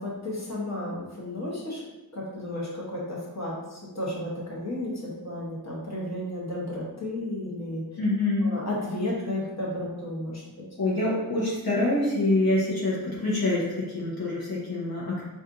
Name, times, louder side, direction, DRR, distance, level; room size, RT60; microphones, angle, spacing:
voice 1, 0.0-1.8 2.1-7.8 8.4-10.4, left 1 dB, 45° left, -5 dB, 1.0 m, -33 dB
voice 2, 8.0-8.5 10.8-15.2, left 2 dB, 70° left, -7 dB, 0.9 m, -26 dB
4.1 x 2.5 x 2.5 m, 1.1 s
wide cardioid pair, 65°, 37 cm